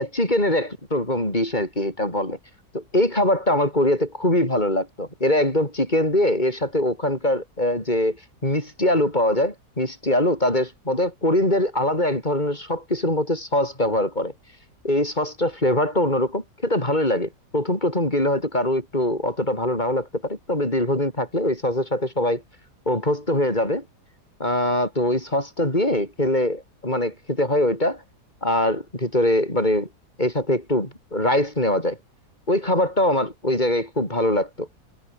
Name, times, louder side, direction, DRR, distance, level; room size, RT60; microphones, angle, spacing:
voice 1, 0.0-2.4 2.7-8.2 8.4-14.3 14.8-22.4 22.9-23.8 24.4-28.0 28.4-29.9 30.2-32.0 32.5-34.7, left 1 dB, 25° left, 6.8 m, -22 dB
omnidirectional pair, 1.7 m